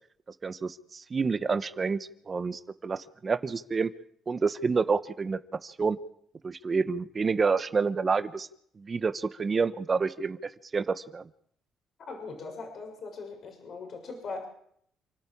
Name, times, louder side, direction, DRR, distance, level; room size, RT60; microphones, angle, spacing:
voice 1, 0.4-3.9 4.3-6.0 6.4-8.5 8.8-10.4 10.7-11.3, right 4 dB, 40° right, 12 dB, 1.2 m, -28 dB
voice 2, 12.1-14.5, left 4 dB, 55° left, 3 dB, 6.8 m, -40 dB
28.5 x 12.0 x 8.7 m, 0.68 s
supercardioid pair, 65°, 0 cm